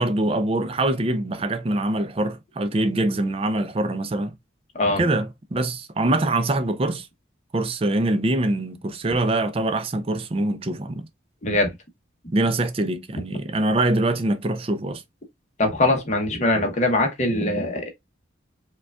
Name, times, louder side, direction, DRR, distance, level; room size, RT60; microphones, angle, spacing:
voice 1, 0.0-4.3 5.0-7.1 7.5-11.1 12.3-15.0, right 2 dB, 30° right, 0.4 m, -24 dB
voice 2, 15.6-17.9, left 2 dB, 35° left, 0.9 m, -22 dB
4.8 x 2.3 x 2.3 m
head